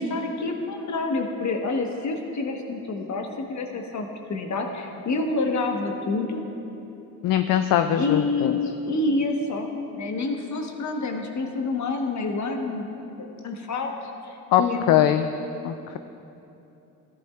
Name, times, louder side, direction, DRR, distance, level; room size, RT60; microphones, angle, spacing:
voice 1, 0.0-6.5 8.0-13.9 14.2-14.8, left 3 dB, 50° left, 3 dB, 1.3 m, -28 dB
voice 2, 7.2-8.6 14.5-14.6 14.9-15.3 15.6-16.0, left 11 dB, 70° left, 9 dB, 0.5 m, -21 dB
14.0 x 10.5 x 2.4 m, 2.9 s
supercardioid pair, 65°, 36 cm